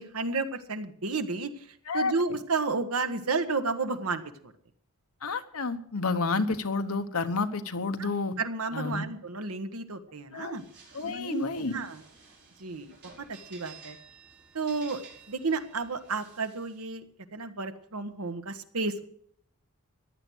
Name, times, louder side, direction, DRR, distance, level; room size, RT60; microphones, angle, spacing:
voice 1, 0.0-1.7 1.9-4.5 8.0-8.1 8.4-10.6 11.0-12.0 12.6-12.9 13.3-14.0 14.5-15.0 15.3-17.0 17.3-19.0, right 3 dB, 80° right, 8 dB, 1.4 m, -32 dB
voice 2, 5.2-8.3 8.7-9.0 10.3-10.6 10.9-11.7, left 3 dB, 75° left, 8 dB, 1.2 m, -30 dB
sound 1, 10.5-16.9, right 5 dB, 55° right, 5.4 m, -53 dB
15.0 x 11.0 x 6.3 m, 0.65 s
head